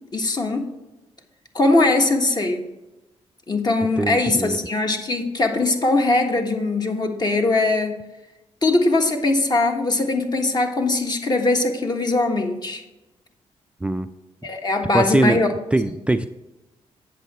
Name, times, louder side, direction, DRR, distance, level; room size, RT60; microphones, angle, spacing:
voice 1, 0.1-0.7 1.5-2.6 3.5-8.0 8.6-12.8 14.4-15.5, left 2 dB, 35° left, 4 dB, 1.4 m, -21 dB
voice 2, 4.0-4.6 13.8-14.1 14.9-15.4 15.7-16.3, right 2 dB, 10° right, 9 dB, 0.4 m, -21 dB
8.2 x 6.4 x 4.2 m, 0.99 s
cardioid pair, 70°, 12 cm